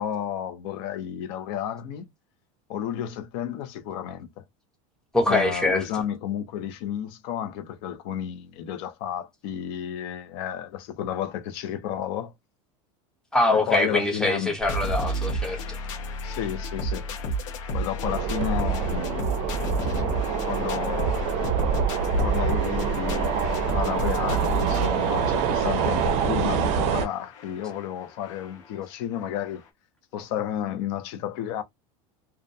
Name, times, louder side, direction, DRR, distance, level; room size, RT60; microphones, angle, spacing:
voice 1, 0.0-2.1 2.7-4.4 5.3-12.3 13.5-14.5 16.2-17.0 17.7-19.4 20.5-21.2 22.2-29.6 30.1-31.6, left 10 dB, 55° left, 0.6 m, -32 dB
voice 2, 5.1-5.8 13.3-15.6, left 2 dB, 5° left, 0.6 m, -23 dB
sound 1, 14.6-28.7 29.3-29.4 29.6-29.7, right 1 dB, 85° left, 0.9 m, -31 dB
sound 2, 18.0-27.1, right 6 dB, 45° right, 0.5 m, -26 dB
2.4 x 2.1 x 2.6 m
supercardioid pair, 160°, 16 cm